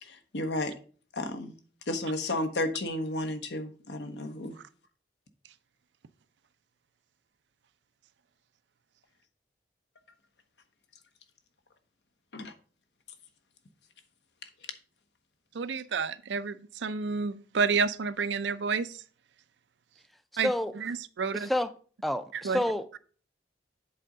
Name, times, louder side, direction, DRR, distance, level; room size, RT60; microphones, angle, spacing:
voice 1, 0.0-0.7 1.1-1.5 1.9-4.5 12.3-12.5, left 1 dB, 75° left, 1.0 m, -32 dB
voice 2, 15.5-19.0 20.4-21.5 22.3-22.6, right 5 dB, 85° right, 0.5 m, -30 dB
voice 3, 21.3-21.7 22.0-23.0, left 1 dB, ahead, 0.4 m, -29 dB
7.7 x 3.8 x 5.4 m
head